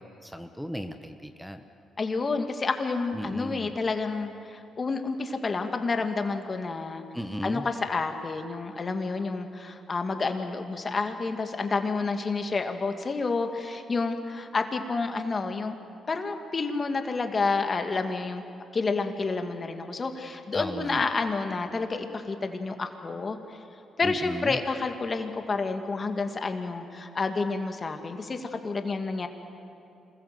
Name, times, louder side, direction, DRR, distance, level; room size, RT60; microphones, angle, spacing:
voice 1, 0.0-1.7 3.1-3.7 7.1-7.7 20.5-21.0 24.0-24.6, equal, ahead, 7 dB, 1.4 m, -36 dB
voice 2, 2.0-7.0 7.4-15.7 16.1-18.4 18.7-23.4 24.0-29.3, left 4 dB, 40° left, 6 dB, 2.5 m, -29 dB
27.0 x 21.0 x 7.9 m, 2.7 s
supercardioid pair, 60°, 0 cm